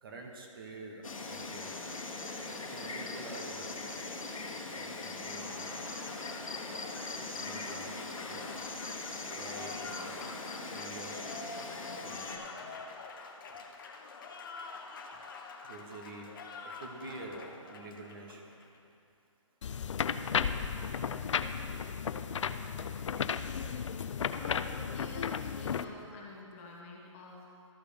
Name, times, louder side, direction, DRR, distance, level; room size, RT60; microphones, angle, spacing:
voice 1, 0.0-1.7 2.7-3.8 4.8-5.9 7.4-8.5 9.3-10.3 10.7-11.2 12.0-12.8 15.6-16.3 16.6-18.4, right 2 dB, 45° right, 1 dB, 1.2 m, -47 dB
Insect, 1.0-12.4, left 3 dB, 90° left, 1.1 m, -40 dB
Applause, 5.3-18.8, left 4 dB, 40° left, 0.8 m, -47 dB
sound 1, 19.6-25.8, left 7 dB, 65° left, 0.4 m, -34 dB
voice 2, 24.0-27.7, left 2 dB, 25° left, -2 dB, 1.3 m, -48 dB
13.5 x 4.8 x 5.2 m, 2.5 s
hypercardioid pair, 155°, 17 cm